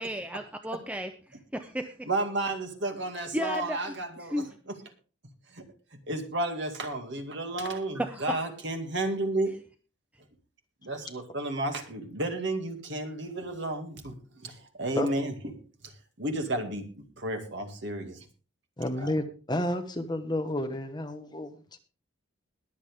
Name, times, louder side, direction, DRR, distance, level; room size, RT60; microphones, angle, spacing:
voice 1, 0.0-2.1 3.3-3.9 4.3-4.5 8.0-8.4, equal, 5° right, 6 dB, 0.7 m, -34 dB
voice 2, 2.1-4.8 5.5-5.6 5.9-9.6 10.8-15.5 15.8-18.3 19.0-19.1, right 2 dB, 60° right, 5 dB, 2.2 m, -32 dB
voice 3, 18.8-21.5, left 1 dB, 20° left, 6 dB, 1.3 m, -31 dB
21.5 x 7.4 x 3.5 m, 0.36 s
head